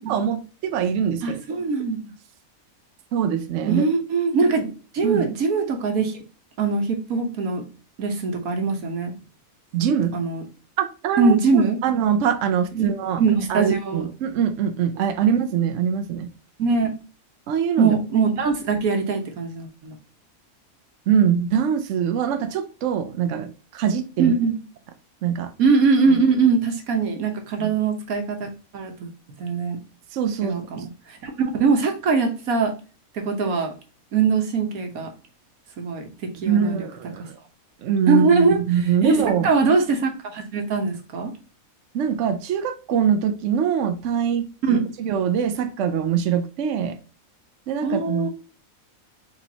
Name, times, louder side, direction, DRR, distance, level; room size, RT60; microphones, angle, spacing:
voice 1, 0.0-1.4 3.1-3.8 5.0-5.3 9.7-10.2 10.8-13.2 13.5-16.3 17.5-17.9 21.1-24.3 25.2-25.5 27.6-27.7 30.1-30.6 36.5-37.3 37.8-39.5 41.9-47.0 47.7-48.3, right 8 dB, 65° right, 0.9 m, -23 dB
voice 2, 1.2-2.0 3.7-6.2 6.6-7.7 8.0-9.1 10.1-10.4 11.2-11.8 12.7-12.9 13.2-14.1 16.6-17.0 17.8-20.0 24.2-24.6 25.6-29.1 29.4-29.8 30.4-32.7 33.1-33.7 34.1-35.1 35.8-36.8 38.1-38.6 39.0-41.3 44.6-44.8 47.8-48.3, right 4 dB, 90° right, 1.5 m, -22 dB
4.5 x 4.1 x 2.8 m
omnidirectional pair, 1.5 m